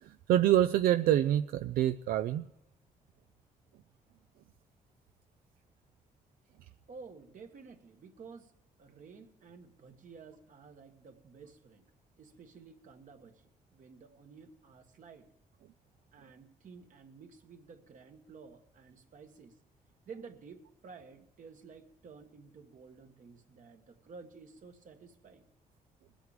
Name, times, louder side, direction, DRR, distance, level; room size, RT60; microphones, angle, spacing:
voice 1, 0.0-2.5, right 12 dB, 90° right, 10 dB, 0.4 m, -26 dB
voice 2, 6.9-8.5 8.8-11.8 12.2-15.3 16.1-19.6 20.0-25.5, right 5 dB, 60° right, 5 dB, 1.6 m, -52 dB
21.0 x 8.1 x 5.0 m, 0.82 s
cardioid pair, 85°, 15 cm